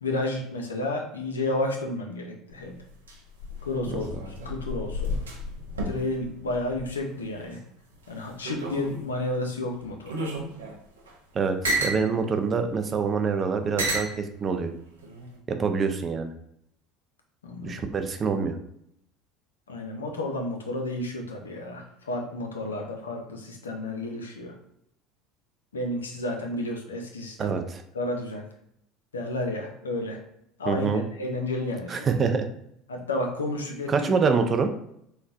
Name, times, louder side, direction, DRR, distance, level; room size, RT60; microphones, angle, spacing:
voice 1, 0.0-2.8 3.6-4.1 4.4-5.2 5.9-7.6 8.1-10.3 17.4-17.8 19.7-24.6 25.7-27.6 27.9-28.4 29.1-30.2 30.6-32.1 32.9-34.3, left 2 dB, 90° left, 2 dB, 0.5 m, -31 dB
sound 1, 2.5-7.6 7.9-9.2 9.8-12.0 12.9-13.0 13.8-14.1 15.0-15.4, right 1 dB, 90° right, 0.5 m, -32 dB
voice 2, 11.3-14.7 15.5-16.3 17.6-18.6 27.4-27.8 30.7-31.0 31.9-32.5 33.9-34.7, right 5 dB, 35° right, 7 dB, 0.4 m, -26 dB
3.8 x 2.1 x 2.4 m, 0.74 s
hypercardioid pair, 70°, 0 cm